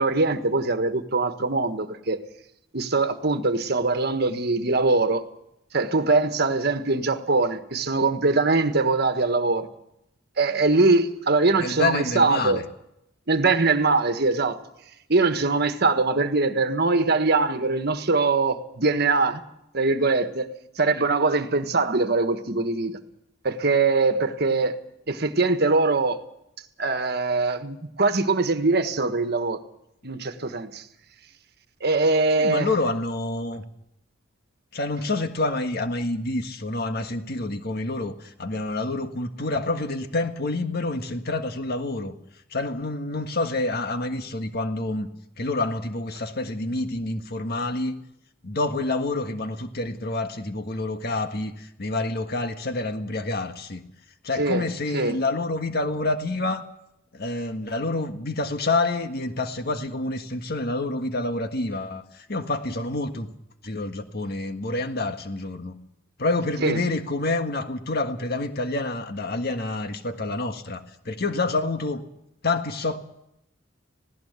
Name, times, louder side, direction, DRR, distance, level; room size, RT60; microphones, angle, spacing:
voice 1, 0.0-2.2 2.7-5.2 5.7-9.7 10.4-12.6 13.3-14.6 15.1-19.4 19.7-20.5 20.8-23.0 23.4-24.7 25.1-26.2 26.8-29.6 30.0-30.8 31.8-32.7 54.4-54.7 54.9-55.2 66.6-66.8, right 3 dB, 55° right, 1.5 m, -22 dB
voice 2, 11.6-12.6 32.4-33.6 34.7-42.1 42.5-45.1 45.4-48.0 48.4-53.8 54.2-56.6 57.1-62.0 62.3-63.3 63.6-65.7 66.2-72.0 72.4-73.0, left 2 dB, 55° left, 1.6 m, -28 dB
19.5 x 17.0 x 8.2 m
head